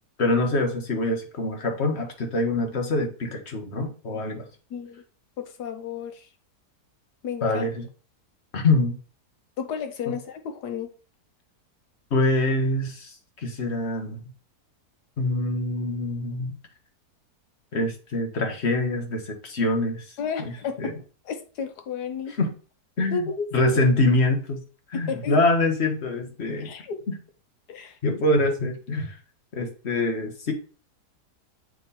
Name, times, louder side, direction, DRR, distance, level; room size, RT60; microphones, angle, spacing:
voice 1, 0.2-4.4 7.4-7.8 8.5-9.0 12.1-13.1 13.4-14.2 15.2-16.5 17.7-20.0 20.8-20.9 22.4-22.5 23.0-23.2 23.5-24.6 24.9-26.7 28.0-29.2 29.5-30.5, left 2 dB, 45° left, 4 dB, 1.4 m, -24 dB
voice 2, 4.7-5.0 5.4-6.3 7.2-7.6 9.6-10.9 20.2-20.9 21.2-22.3 23.1-23.8 24.9-25.4 26.6-27.0 27.7-28.0, left 4 dB, 75° left, 7 dB, 1.5 m, -32 dB
7.3 x 3.7 x 4.1 m, 0.37 s
omnidirectional pair, 1.8 m